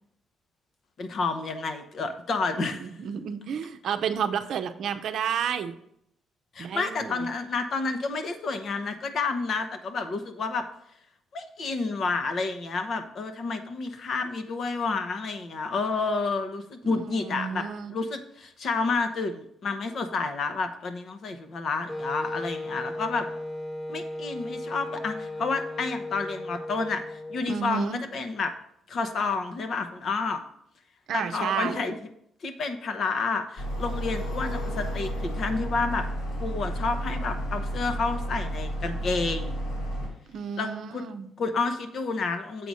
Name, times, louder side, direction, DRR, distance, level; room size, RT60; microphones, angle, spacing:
voice 1, 1.0-2.8 6.5-10.7 11.3-23.3 23.9-28.5 28.9-30.4 31.1-31.9 32.4-36.1 36.4-39.5 40.6-41.1 41.4-42.7, left 4 dB, 55° left, 7 dB, 1.0 m, -30 dB
voice 2, 2.7-5.7 6.6-7.3 16.9-18.0 27.5-28.0 31.1-31.8 40.3-41.3, right 7 dB, 70° right, 9 dB, 0.6 m, -31 dB
Wind instrument woodwind instrument, 21.9-27.6, left 1 dB, 10° left, 1.2 m, -36 dB
sound 1, 33.6-40.1, equal, 85° left, 3.3 m, -31 dB
7.6 x 4.1 x 6.3 m, 0.73 s
cardioid pair, 90°, 0 cm